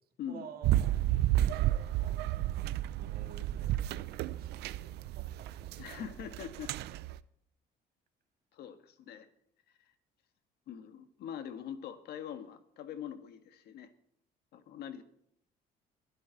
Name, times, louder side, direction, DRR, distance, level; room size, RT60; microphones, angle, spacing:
voice 1, 0.3-0.8 1.1-2.2 2.5-2.7 3.0-6.1, right 8 dB, 60° right, 6 dB, 2.1 m, -52 dB
sound 1, 0.6-7.2, right 14 dB, 80° right, 0.6 m, -32 dB
voice 2, 5.8-6.7 8.5-9.3 10.7-13.9 14.5-15.0, left 9 dB, 70° left, 9 dB, 1.5 m, -43 dB
22.0 x 12.0 x 4.1 m, 0.72 s
cardioid pair, 110°, 17 cm